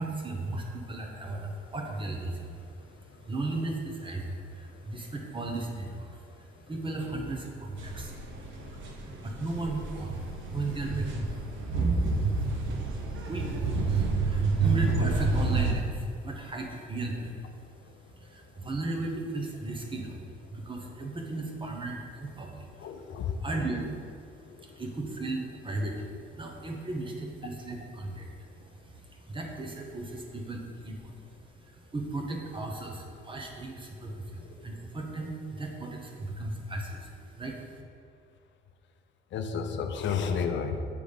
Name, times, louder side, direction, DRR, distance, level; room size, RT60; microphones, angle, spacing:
voice 1, 0.0-17.5 17.8-17.9 18.1-37.8, right 2 dB, 25° right, 1 dB, 1.0 m, -36 dB
sound 1, 7.8-15.7, right 4 dB, 75° right, 0.9 m, -29 dB
voice 2, 8.6-9.0 22.8-23.4 24.6-24.7 39.3-40.8, left 6 dB, 70° left, 6 dB, 0.6 m, -32 dB
6.8 x 3.8 x 5.1 m, 2.2 s
cardioid pair, 90°, 20 cm